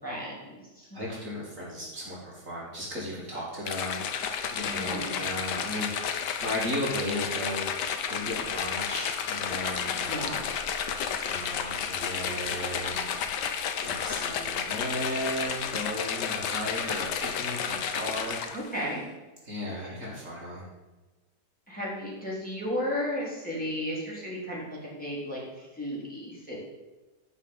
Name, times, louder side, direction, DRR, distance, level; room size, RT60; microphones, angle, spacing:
voice 1, 0.0-1.0 4.7-5.2 10.0-10.4 18.5-19.0 19.8-20.0 21.7-26.6, equal, 5° left, -7 dB, 3.9 m, -34 dB
voice 2, 0.9-10.6 11.2-13.1 13.8-18.4 19.4-20.7, equal, 50° right, -5 dB, 3.0 m, -36 dB
sound 1, 3.7-18.8, left 7 dB, 90° left, 1.5 m, -32 dB
12.0 x 5.5 x 7.2 m, 1.1 s
omnidirectional pair, 1.8 m